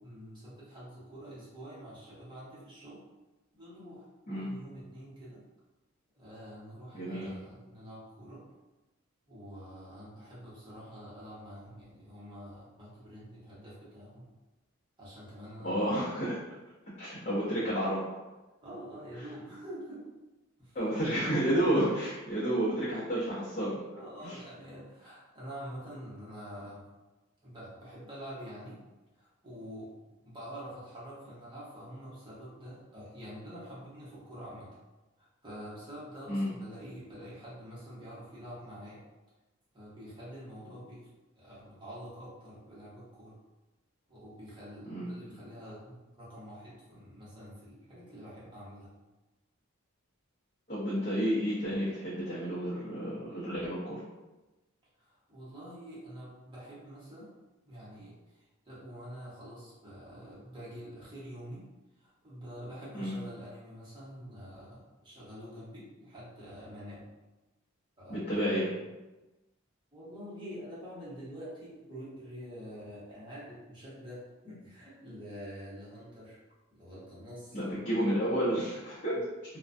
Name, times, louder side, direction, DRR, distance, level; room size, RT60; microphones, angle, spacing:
voice 1, 0.0-3.1 3.5-5.4 6.2-8.5 9.3-14.3 15.0-15.9 18.6-20.1 20.6-20.8 23.9-26.9 27.4-28.8 29.1-29.9 30.2-34.7 35.2-39.0 39.7-41.1 41.4-43.4 44.1-48.9 55.0-57.3 57.6-61.7 62.0-67.0 68.0-68.6 69.9-76.4 76.7-77.6, equal, 25° right, -9 dB, 0.9 m, -46 dB
voice 2, 6.9-7.3 15.6-16.4 17.0-18.0 20.7-23.7 24.2-24.4 36.3-36.5 44.9-45.1 50.7-54.0 63.0-63.1 68.1-68.7 77.5-79.2, equal, 35° left, -12 dB, 0.7 m, -30 dB
2.3 x 2.2 x 2.5 m, 1.1 s
head